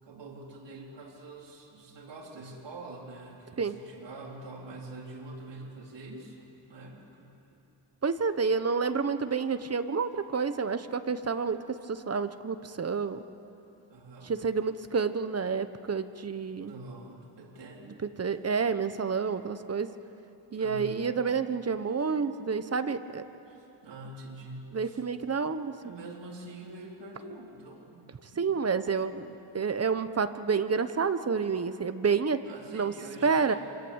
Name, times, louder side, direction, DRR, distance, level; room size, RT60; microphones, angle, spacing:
voice 1, 0.0-7.6 13.9-14.3 16.6-17.9 18.3-18.4 20.5-21.1 23.5-25.0 25.8-28.6 32.4-33.6, right 2 dB, 65° right, -1 dB, 4.2 m, -45 dB
voice 2, 8.0-13.2 14.2-16.7 18.2-19.9 20.5-23.2 24.7-25.7 28.4-32.4 32.7-32.9 33.2-33.5, right 5 dB, 30° right, 10 dB, 1.2 m, -29 dB
27.0 x 26.5 x 8.2 m, 2.9 s
wide cardioid pair, 125°, 47 cm